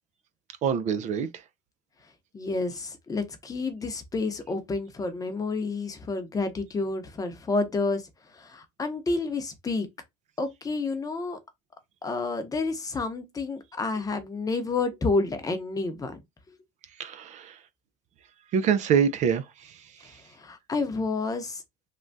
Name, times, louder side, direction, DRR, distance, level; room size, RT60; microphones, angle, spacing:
voice 1, 0.6-1.3 17.0-17.5 18.5-19.4, right 7 dB, 50° right, 0.4 m, -24 dB
voice 2, 2.3-8.0 8.3-9.9 10.4-11.4 12.0-16.2 20.3-21.6, left 3 dB, 20° left, 0.7 m, -29 dB
3.3 x 2.2 x 2.6 m
supercardioid pair, 110°, 16 cm